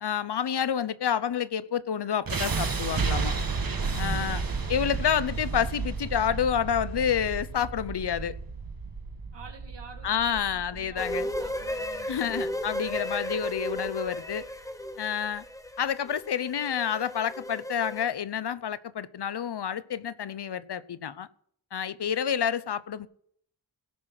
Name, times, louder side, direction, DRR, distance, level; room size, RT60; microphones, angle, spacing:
voice 1, 0.0-3.3 4.0-4.4 4.7-8.3 10.0-11.3 12.1-14.5 15.0-15.4 15.8-21.3 21.7-23.1, left 8 dB, 70° left, 16 dB, 0.8 m, -29 dB
sound 1, 2.3-14.3, right 4 dB, 55° right, 1.5 m, -33 dB
voice 2, 4.1-4.5 9.3-12.9, right 4 dB, 80° right, 1 dB, 2.2 m, -49 dB
sound 2, 11.0-18.1, left 1 dB, 10° left, 1.0 m, -35 dB
17.5 x 5.8 x 6.1 m, 0.63 s
wide cardioid pair, 80°, 42 cm